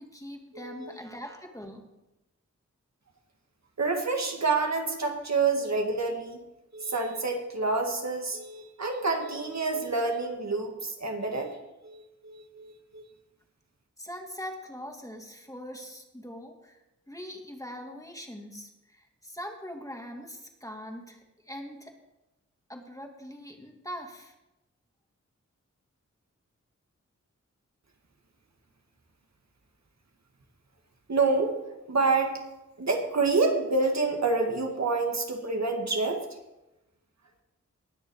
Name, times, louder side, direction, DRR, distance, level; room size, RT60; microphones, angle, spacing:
voice 1, 0.0-1.9 14.0-16.8 17.1-21.9 22.7-24.3, equal, 10° left, 2 dB, 2.1 m, -42 dB
voice 2, 0.5-0.9 3.8-6.4 6.7-11.6 11.8-13.0 31.1-31.6 31.9-32.4 32.8-36.3, right 3 dB, 65° right, 3 dB, 2.0 m, -28 dB
19.5 x 6.7 x 4.7 m, 0.96 s
cardioid pair, 55°, 30 cm